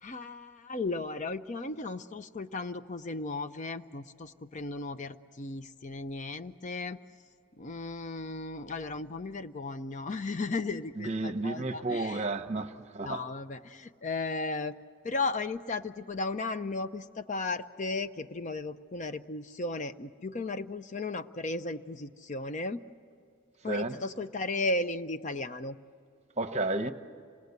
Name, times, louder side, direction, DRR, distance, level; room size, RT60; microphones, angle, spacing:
voice 1, 0.0-7.0 7.6-12.3 13.0-14.8 15.0-22.8 23.6-25.8, left 3 dB, 35° left, 0.5 m, -35 dB
voice 2, 11.0-13.2 23.7-23.9 26.4-26.9, right 2 dB, 30° right, 0.9 m, -32 dB
27.0 x 19.0 x 8.2 m
head